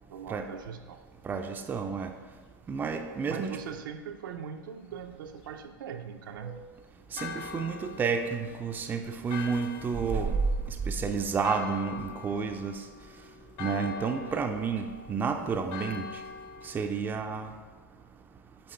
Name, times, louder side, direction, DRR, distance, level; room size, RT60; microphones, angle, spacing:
voice 1, 0.1-1.0 3.3-6.6, right 7 dB, 80° right, 5 dB, 0.6 m, -41 dB
voice 2, 1.2-2.1 2.7-3.6 6.4-6.5 7.1-10.5 10.9-12.8 13.6-16.1 16.6-17.5, right 5 dB, 15° right, 5 dB, 0.4 m, -30 dB
Church bell, 7.2-16.8, left 6 dB, 50° left, 0.6 m, -43 dB
8.6 x 3.0 x 4.4 m, 1.4 s
hypercardioid pair, 120°, 11 cm